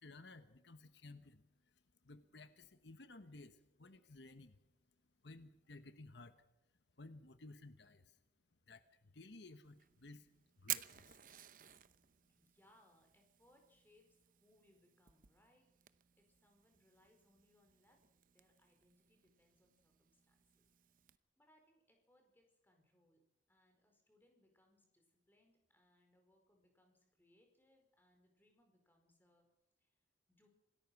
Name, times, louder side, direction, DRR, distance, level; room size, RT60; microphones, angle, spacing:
voice 1, 0.0-4.6 5.2-6.4 7.0-8.2 8.7-10.3 10.6-11.2, left 2 dB, 75° left, 10 dB, 1.2 m, -57 dB
Fire, 9.6-21.2, right 13 dB, 45° right, 0.8 m, -52 dB
voice 2, 12.4-20.6 21.0-23.2 23.5-29.5 29.8-30.0 30.3-30.5, left 1 dB, 10° left, 3 dB, 4.7 m, -73 dB
26.5 x 18.0 x 6.0 m, 0.88 s
head